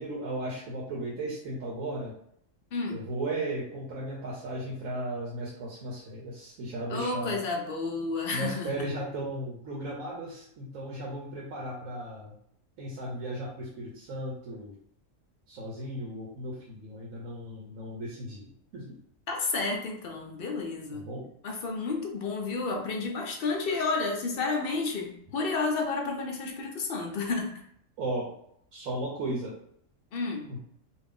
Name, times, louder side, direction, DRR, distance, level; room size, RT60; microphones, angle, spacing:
voice 1, 0.0-2.1 2.9-7.4 8.3-12.3 12.8-14.7 15.5-19.0 20.9-21.3 28.0-28.3 28.7-29.6 30.5-30.6, right 1 dB, 85° right, -3 dB, 1.1 m, -36 dB
voice 2, 2.7-3.0 6.9-8.9 19.3-21.0 21.4-27.5 30.1-30.5, left 3 dB, 60° left, 2 dB, 0.7 m, -31 dB
2.6 x 2.4 x 3.5 m, 0.69 s
omnidirectional pair, 1.4 m